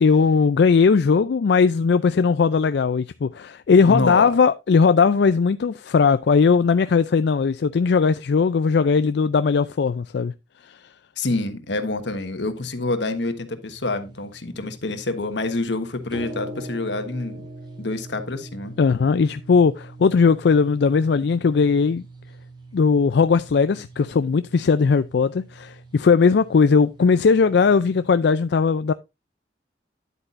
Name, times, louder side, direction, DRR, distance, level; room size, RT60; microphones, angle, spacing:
voice 1, 0.0-10.3 10.6-10.8 18.8-22.1 22.7-28.9, left 5 dB, 70° left, 0.4 m, -18 dB
voice 2, 3.8-4.3 11.2-17.5 17.8-18.7, left 2 dB, 90° left, 1.3 m, -27 dB
sound 1, 13.7-28.1, right 1 dB, 25° right, 2.5 m, -43 dB
10.0 x 8.3 x 2.5 m
head